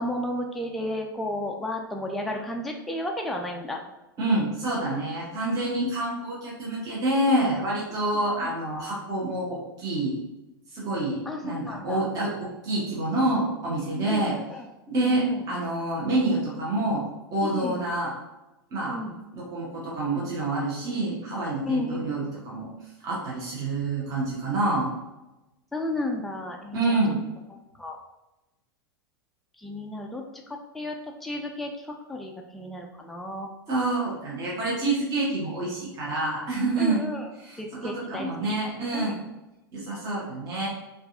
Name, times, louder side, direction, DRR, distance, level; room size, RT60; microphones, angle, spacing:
voice 1, 0.0-3.8 8.1-8.5 11.3-12.1 14.1-14.6 14.9-15.4 17.4-17.8 18.9-19.2 21.6-22.1 25.7-27.0 27.8-28.0 29.6-33.5 36.8-37.3 37.6-38.6 38.9-39.1, left 1 dB, ahead, 1 dB, 0.4 m, -33 dB
voice 2, 4.2-10.2 10.7-14.3 14.9-17.0 17.3-18.1 18.7-19.0 19.3-22.7 23.0-24.9 26.7-27.2 33.7-37.0 37.4-39.2 39.7-40.7, right 2 dB, 30° right, -5 dB, 1.1 m, -27 dB
5.2 x 2.5 x 2.6 m, 1.0 s
figure-of-eight pair, 90°, 12 cm